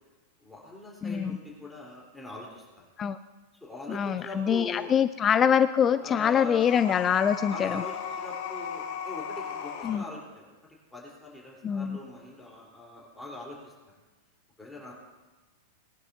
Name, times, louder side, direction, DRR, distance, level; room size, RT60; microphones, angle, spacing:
voice 1, 0.4-2.8 3.6-4.9 6.0-6.7 7.5-10.5 10.9-13.7 14.6-14.9, left 2 dB, 5° left, -5 dB, 4.0 m, -42 dB
voice 2, 1.0-1.4 3.0-3.2 3.9-7.8 9.8-10.0 11.6-12.0, left 8 dB, 25° left, 12 dB, 0.4 m, -24 dB
sound 1, 6.6-10.0, left 7 dB, 60° left, 2.7 m, -36 dB
21.0 x 11.0 x 2.8 m, 1.2 s
hypercardioid pair, 105°, 0 cm